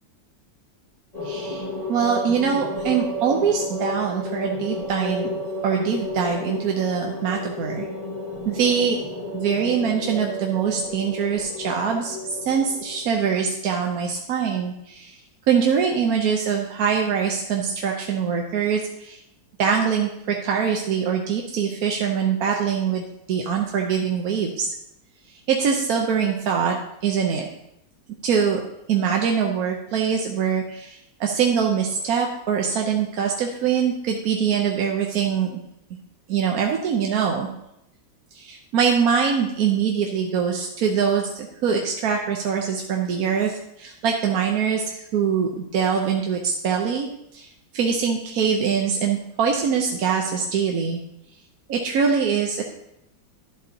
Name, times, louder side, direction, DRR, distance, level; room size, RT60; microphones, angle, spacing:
sound 1, 1.1-13.4, left 1 dB, 20° left, 1.7 m, -32 dB
voice 1, 1.2-5.3 5.6-7.9 8.5-9.0 9.3-15.2 15.5-19.2 19.6-24.7 25.5-26.8 27.0-27.5 28.2-28.6 28.9-35.6 36.3-37.5 38.3-47.5 47.7-51.0 51.7-52.6, right 7 dB, 60° right, 1 dB, 1.1 m, -23 dB
11.5 x 7.4 x 2.8 m, 0.81 s
omnidirectional pair, 2.0 m